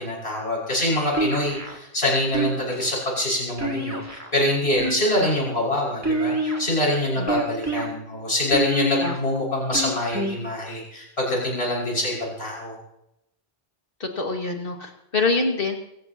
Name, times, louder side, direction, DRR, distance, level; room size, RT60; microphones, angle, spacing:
voice 1, 0.0-12.8, left 1 dB, 75° left, -5 dB, 6.3 m, -25 dB
sound 1, 1.1-1.8 2.3-2.9 3.6-4.3 4.7-5.4 6.0-6.7 7.3-7.9 8.5-9.2 9.7-10.4, right 2 dB, 15° right, 2.6 m, -27 dB
voice 2, 14.0-15.8, left 3 dB, 60° left, 2 dB, 2.3 m, -25 dB
25.5 x 14.5 x 2.9 m, 0.82 s
omnidirectional pair, 1.0 m